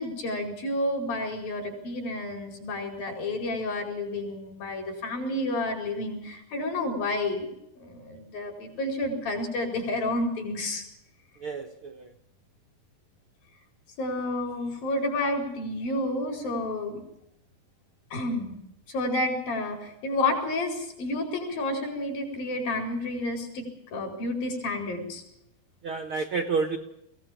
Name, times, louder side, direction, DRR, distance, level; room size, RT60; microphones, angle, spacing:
voice 1, 0.0-7.5 7.8-10.8 14.0-17.0 18.1-18.5 18.9-25.2, left 2 dB, 65° left, 3 dB, 6.5 m, -30 dB
voice 2, 11.4-12.0 25.8-26.8, right 4 dB, 60° right, 6 dB, 1.4 m, -29 dB
23.0 x 17.0 x 7.5 m, 0.80 s
omnidirectional pair, 4.3 m